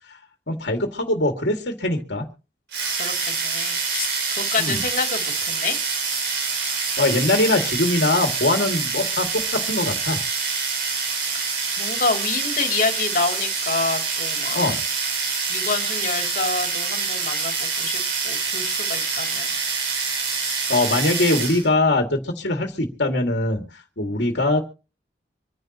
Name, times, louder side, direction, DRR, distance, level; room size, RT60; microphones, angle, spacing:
voice 1, 0.5-2.3 4.6-4.8 7.0-10.2 14.5-14.8 20.7-23.6 24.0-24.6, left 2 dB, 85° left, 3 dB, 2.3 m, -22 dB
sound 1, 2.7-21.7, right 5 dB, 80° right, 3.9 m, -26 dB
voice 2, 3.0-4.1 4.3-5.7 11.3-14.6 15.2-19.5 20.3-20.5, left 4 dB, 50° left, 3 dB, 3.0 m, -28 dB
26.0 x 10.5 x 3.0 m, 0.35 s
head